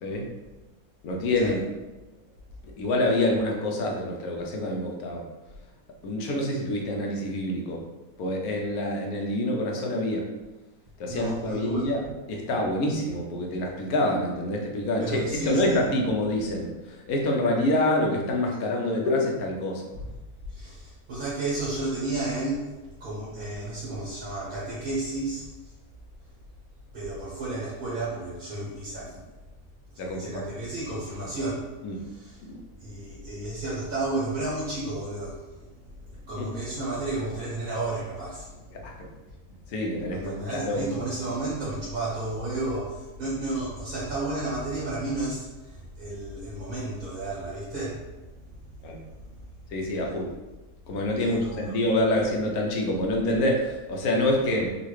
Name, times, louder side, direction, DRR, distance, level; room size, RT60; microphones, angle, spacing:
voice 1, 1.0-1.6 2.8-5.2 6.0-7.8 8.2-10.3 11.0-19.9 30.0-30.4 31.8-32.0 32.4-32.6 36.4-36.5 38.7-38.9 39.7-40.8 48.8-49.0 49.7-50.3 50.9-54.8, left 1 dB, 80° left, 0 dB, 1.1 m, -26 dB
voice 2, 11.1-11.9 15.0-15.8 19.9-20.0 20.5-22.6 23.0-25.4 26.9-29.2 30.0-31.7 32.0-32.4 32.8-35.6 36.1-39.2 40.1-48.0 48.7-48.8 51.2-51.6, right 2 dB, 75° right, -8 dB, 1.6 m, -32 dB
3.7 x 2.4 x 3.1 m, 1.1 s
omnidirectional pair, 1.6 m